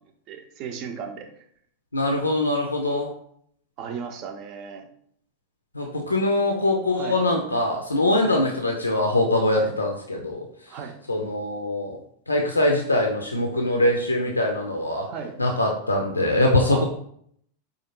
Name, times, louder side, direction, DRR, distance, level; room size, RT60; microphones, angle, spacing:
voice 1, 0.0-1.4 3.8-4.9 6.9-7.2 8.2-8.4 9.5-9.7 10.7-11.0 14.7-15.4 16.7-16.8, right 6 dB, 40° right, 6 dB, 0.6 m, -36 dB
voice 2, 1.9-3.1 5.7-10.5 11.1-12.0 12.3-15.1 15.4-16.8, left 1 dB, 80° left, 1 dB, 0.5 m, -23 dB
4.9 x 2.5 x 2.9 m, 0.66 s
figure-of-eight pair, 90°, 0 cm